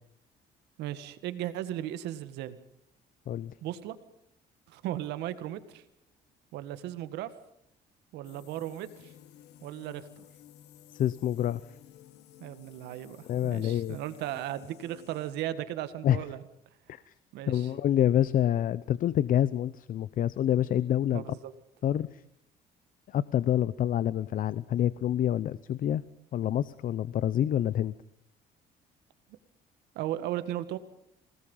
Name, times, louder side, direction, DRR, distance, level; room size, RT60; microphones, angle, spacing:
voice 1, 0.8-2.6 3.6-4.0 4.7-5.8 6.5-7.3 8.1-9.1 9.6-10.2 12.4-16.4 17.3-17.7 21.1-21.5 30.0-30.8, right 13 dB, 85° right, 11 dB, 1.9 m, -36 dB
sound 1, 8.2-15.3, left 12 dB, 80° left, 1.8 m, -54 dB
voice 2, 10.9-11.6 13.3-14.0 16.0-16.2 16.9-17.1 17.5-21.2 21.8-22.2 23.1-26.0 26.3-27.9, left 11 dB, 55° left, 18 dB, 0.8 m, -27 dB
28.0 x 19.0 x 5.6 m, 0.81 s
cardioid pair, 110°, 17 cm